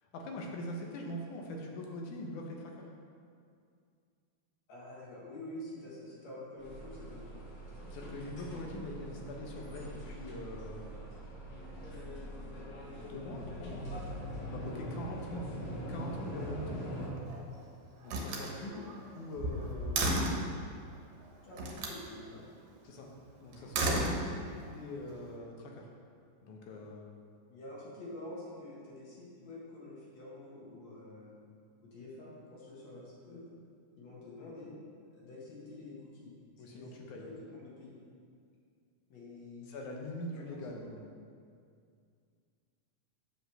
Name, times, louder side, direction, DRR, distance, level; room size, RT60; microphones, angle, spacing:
voice 1, 0.0-2.9 7.8-10.9 12.8-13.9 14.5-16.9 18.0-18.9 19.1-20.4 22.8-23.1 23.4-25.9 26.4-27.1 36.6-37.3 39.7-41.0, left 1 dB, 80° left, 0 dB, 2.5 m, -43 dB
voice 2, 4.7-7.4 18.7-18.9 21.4-22.4 27.5-31.4 31.8-33.4 34.0-34.7 35.1-38.0 39.1-39.7 40.3-40.9, left 1 dB, 60° left, -6 dB, 3.0 m, -48 dB
sound 1, 6.6-17.1, equal, 45° left, 2.1 m, -43 dB
Slam, 17.0-17.6 18.0-20.5 21.6-22.0 23.5-24.7, right 1 dB, 70° right, 2.3 m, -33 dB
8.1 x 5.2 x 6.5 m, 2.3 s
omnidirectional pair, 3.5 m